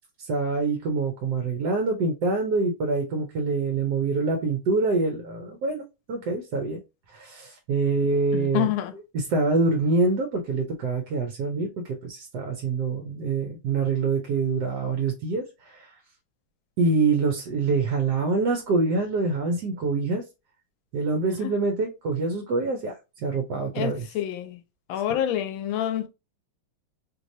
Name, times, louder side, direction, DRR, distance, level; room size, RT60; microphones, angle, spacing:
voice 1, 0.2-6.8 7.1-8.7 9.1-15.9 16.8-20.2 20.9-22.9 23.2-24.1 25.1-25.2, right 3 dB, 65° right, 1.2 m, -25 dB
voice 2, 8.3-8.9 23.7-24.6 24.9-26.1, left 11 dB, 80° left, 1.3 m, -27 dB
3.2 x 3.1 x 2.6 m
omnidirectional pair, 2.2 m